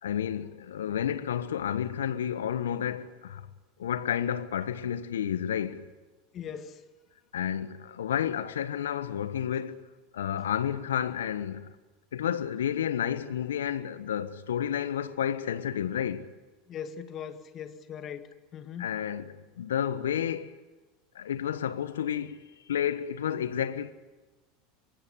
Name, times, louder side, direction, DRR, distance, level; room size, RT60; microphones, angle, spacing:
voice 1, 0.0-3.5 3.8-5.9 7.3-9.8 10.1-11.7 12.1-16.3 18.8-20.6 21.1-22.4 22.7-23.9, left 9 dB, 80° left, 1.3 m, -31 dB
voice 2, 6.3-6.8 16.7-19.0, left 8 dB, 40° left, 2.1 m, -40 dB
24.0 x 24.0 x 9.9 m
hypercardioid pair, 85°, 0 cm